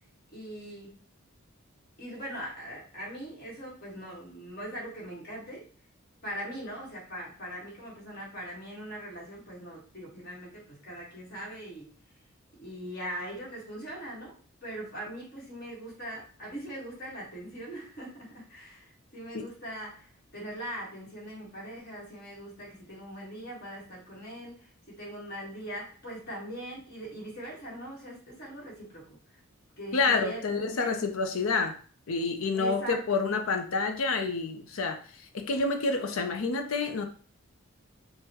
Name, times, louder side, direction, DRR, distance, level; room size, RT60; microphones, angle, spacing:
voice 1, 0.3-1.1 2.0-5.6 6.2-11.9 12.6-14.3 14.6-29.4 29.8-31.0 32.5-33.0, right 1 dB, 45° left, -4 dB, 1.4 m, -41 dB
voice 2, 29.9-31.7 32.1-37.1, left 4 dB, 70° left, 6 dB, 0.5 m, -28 dB
3.8 x 2.1 x 2.9 m, 0.41 s
head